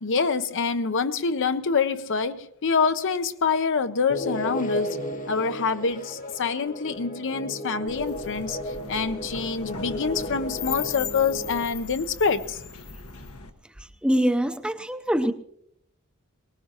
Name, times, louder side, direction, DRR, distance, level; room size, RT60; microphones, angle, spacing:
voice 1, 0.0-5.0 5.3-8.6 8.9-12.6, left 5 dB, 60° left, 0.7 m, -26 dB
sound 1, 4.1-11.6, equal, 35° left, 1.2 m, -34 dB
sound 2, 7.9-13.5, left 7 dB, 85° left, 1.4 m, -38 dB
voice 2, 13.8-15.3, equal, 5° right, 0.7 m, -24 dB
23.0 x 19.0 x 2.9 m
head